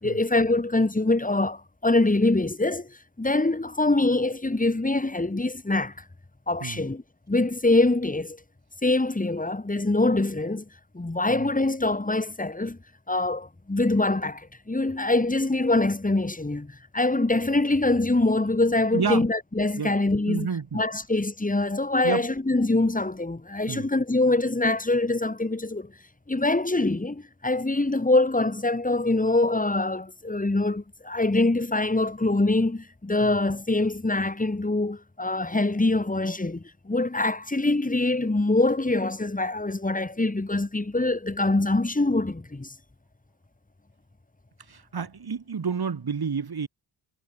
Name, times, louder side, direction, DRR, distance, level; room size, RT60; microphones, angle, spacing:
voice 1, 0.0-5.9 6.5-7.0 7.3-8.4 8.8-10.6 10.9-12.8 13.1-20.5 20.7-25.9 26.3-42.7, left 2 dB, 15° left, 2.7 m, -24 dB
voice 2, 18.9-19.2 19.8-19.9 20.3-20.8 22.0-22.3 23.7-23.9 33.2-33.4 44.7-46.7, right 6 dB, 50° right, 3.1 m, -30 dB
cardioid pair, 65°, 48 cm